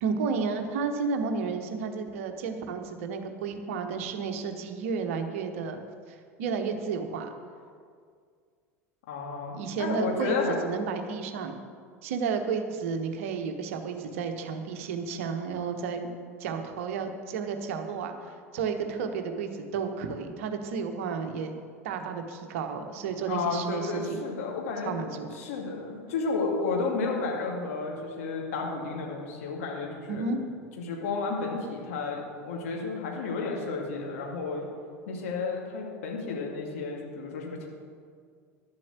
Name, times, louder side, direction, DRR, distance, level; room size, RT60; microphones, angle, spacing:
voice 1, 0.0-5.8 6.4-7.3 9.5-10.4 10.6-11.6 12.0-16.1 16.4-21.5 21.8-24.2 24.8-25.3 30.1-30.4, right 5 dB, 60° right, 6 dB, 1.2 m, -32 dB
voice 2, 9.1-10.6 23.3-25.0 25.3-30.2 30.8-34.7 35.1-37.7, left 4 dB, 60° left, 0 dB, 2.4 m, -32 dB
11.5 x 7.6 x 7.4 m, 2.1 s
figure-of-eight pair, 75°, 8 cm